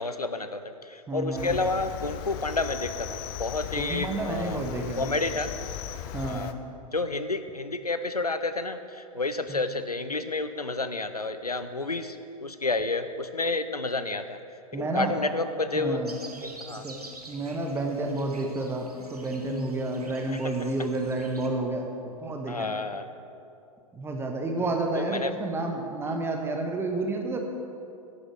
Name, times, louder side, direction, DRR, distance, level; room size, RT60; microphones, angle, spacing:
voice 1, 0.0-4.6 5.0-5.5 6.2-6.5 6.9-14.4 14.7-16.0 16.4-16.9 20.3-20.7 22.5-23.1 24.9-25.4 26.1-26.2, left 3 dB, 90° left, 11 dB, 0.6 m, -30 dB
voice 2, 1.1-1.5 3.8-5.1 6.1-6.5 9.5-9.6 14.7-15.2 15.7-16.1 16.8-17.0 17.3-22.7 23.9-27.4, right 2 dB, 10° right, 3 dB, 1.3 m, -30 dB
Cricket, 1.4-6.5, left 10 dB, 35° left, 0.6 m, -37 dB
sound 1, 16.0-21.5, right 2 dB, 80° right, 1.4 m, -47 dB
10.5 x 9.7 x 6.3 m, 2.6 s
figure-of-eight pair, 100°, 19 cm